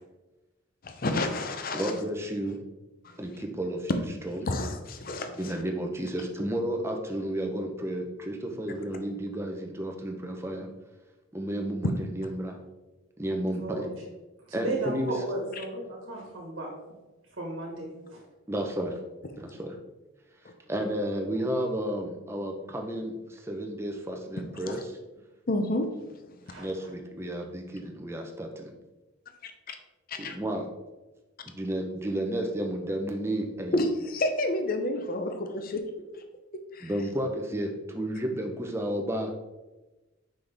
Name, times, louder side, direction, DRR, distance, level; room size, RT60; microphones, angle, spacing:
voice 1, 0.8-1.9 3.0-3.2 4.5-5.5 20.4-20.5 24.7-24.8 25.5-26.6 29.4-29.8 30.1-30.4 33.7-35.8 36.1-36.2 36.7-36.9, left 1 dB, 45° left, 6 dB, 0.6 m, -30 dB
voice 2, 1.7-2.6 3.2-4.5 5.4-10.7 11.3-12.6 13.2-13.9 14.5-15.1 18.5-19.0 19.4-19.7 20.7-25.0 26.6-28.7 30.1-30.7 31.4-33.8 36.8-39.3, right 1 dB, 10° right, 2 dB, 0.6 m, -32 dB
voice 3, 14.6-16.7 17.4-18.2 26.5-26.9 30.2-30.3, right 2 dB, 65° right, -1 dB, 1.4 m, -35 dB
5.8 x 5.3 x 3.4 m, 1.1 s
head